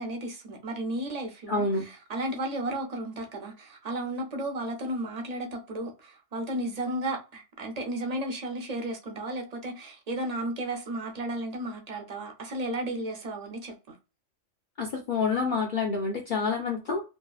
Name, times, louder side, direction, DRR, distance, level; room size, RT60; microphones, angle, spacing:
voice 1, 0.0-14.0, right 1 dB, 50° right, 4 dB, 0.5 m, -34 dB
voice 2, 1.5-1.8 14.8-17.0, left 4 dB, 65° left, 1 dB, 0.5 m, -28 dB
2.7 x 2.4 x 2.3 m, 0.30 s
omnidirectional pair, 1.3 m